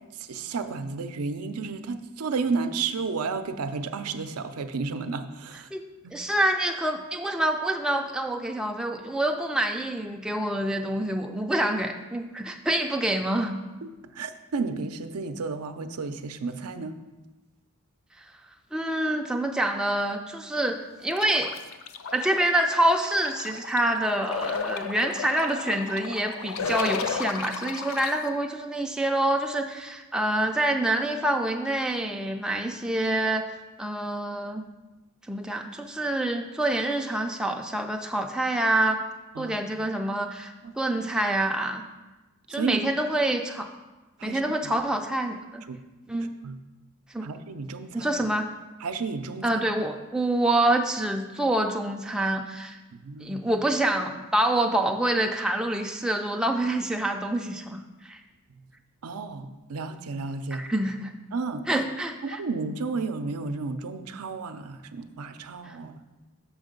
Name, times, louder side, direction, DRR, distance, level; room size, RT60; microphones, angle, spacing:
voice 1, 0.2-5.7 6.0-6.2 13.8-17.0 39.4-39.6 40.6-40.7 42.5-42.9 44.2-44.4 45.7-45.8 46.4-46.6 47.2-48.1 48.8-49.6 52.9-53.4 59.0-60.7 61.3-61.6 62.2-65.9, right 4 dB, 80° right, 9 dB, 0.5 m, -32 dB
voice 2, 6.1-13.6 18.7-21.6 22.1-34.6 35.3-39.0 39.4-41.8 42.5-43.7 44.2-45.6 46.1-46.3 47.1-47.3 47.9-48.5 49.4-52.8 53.2-58.2 60.5-61.1 61.7-62.4 65.7-65.8, right 1 dB, 5° right, 3 dB, 0.4 m, -26 dB
sound 1, 21.2-28.1, left 5 dB, 65° left, 0.5 m, -33 dB
6.3 x 6.2 x 5.2 m, 1.1 s
head